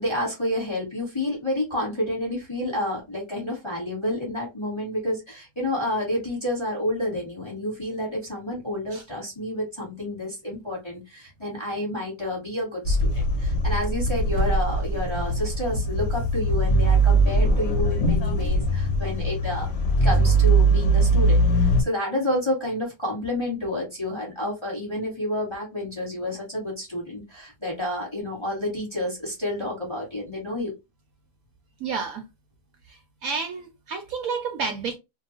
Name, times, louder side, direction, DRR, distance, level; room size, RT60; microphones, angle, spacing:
voice 1, 0.0-19.7 20.0-30.7, left 1 dB, 20° left, 1.0 m, -29 dB
sound 1, 12.8-21.8, right 1 dB, 50° left, 0.8 m, -21 dB
voice 2, 31.8-32.2 33.2-35.0, right 5 dB, 70° right, 0.9 m, -30 dB
2.7 x 2.2 x 2.8 m
omnidirectional pair, 1.8 m